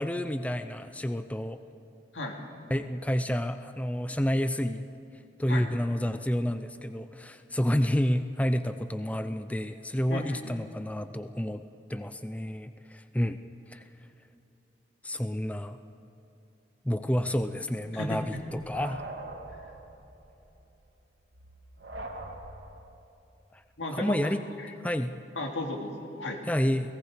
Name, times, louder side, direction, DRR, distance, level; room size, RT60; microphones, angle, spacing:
voice 1, 0.0-1.6 2.7-4.9 5.4-11.6 11.9-13.4 13.7-13.8 15.0-15.8 16.8-19.0 23.5-23.6 23.9-24.4 24.8-25.2 26.4-26.9, equal, 10° left, 10 dB, 0.5 m, -29 dB
sound 1, 17.2-22.9, right 2 dB, 85° right, 2.4 m, -44 dB
voice 2, 17.9-18.4 23.8-24.4 24.6-24.7 25.4-26.4, left 2 dB, 90° left, 2 dB, 2.6 m, -34 dB
29.5 x 18.0 x 5.0 m, 2.8 s
head